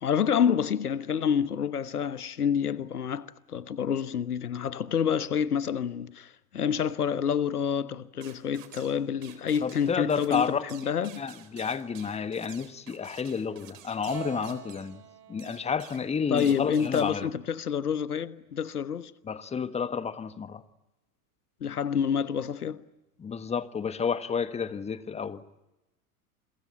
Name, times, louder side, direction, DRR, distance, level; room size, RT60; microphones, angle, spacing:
voice 1, 0.0-11.2 16.3-19.1 21.6-22.8, left 7 dB, 80° left, 1.2 m, -28 dB
sound 1, 8.2-9.0 9.2-14.9 15.4-16.1 16.4-17.1, right 11 dB, 55° right, 4.1 m, -50 dB
voice 2, 9.6-10.9 11.2-15.0 15.3-17.3 19.2-20.6 23.2-25.4, left 6 dB, 15° left, 1.5 m, -31 dB
Keyboard (musical), 14.1-17.5, right 12 dB, 40° right, 6.1 m, -46 dB
29.5 x 23.0 x 8.7 m
figure-of-eight pair, 90°, 45 cm